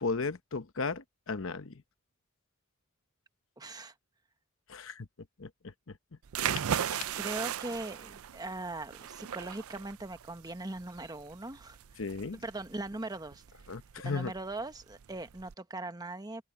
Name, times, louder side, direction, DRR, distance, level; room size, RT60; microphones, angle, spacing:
voice 1, 0.0-1.7 4.7-5.1 5.4-5.5 6.6-6.7 12.0-12.4 13.7-14.3, left 4 dB, 65° left, 1.0 m, -35 dB
voice 2, 3.6-3.9 7.2-12.0 12.3-13.7 14.0-16.4, right 2 dB, 20° right, 1.1 m, -40 dB
sound 1, 6.2-15.5, right 9 dB, 85° right, 0.5 m, -38 dB
head